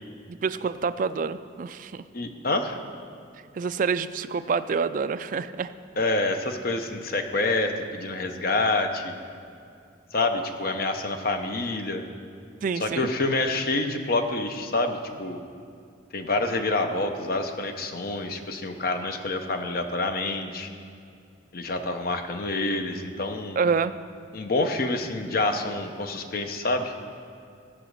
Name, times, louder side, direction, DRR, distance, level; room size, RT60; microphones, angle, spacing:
voice 1, 0.3-2.0 3.5-5.7 12.6-13.1 23.5-23.9, right 5 dB, 45° right, 12 dB, 0.3 m, -27 dB
voice 2, 2.1-2.8 6.0-9.2 10.1-12.0 12.8-15.4 16.1-20.7 21.5-23.6 24.3-26.9, left 2 dB, 50° left, 6 dB, 0.8 m, -27 dB
15.0 x 5.0 x 6.5 m, 2.5 s
head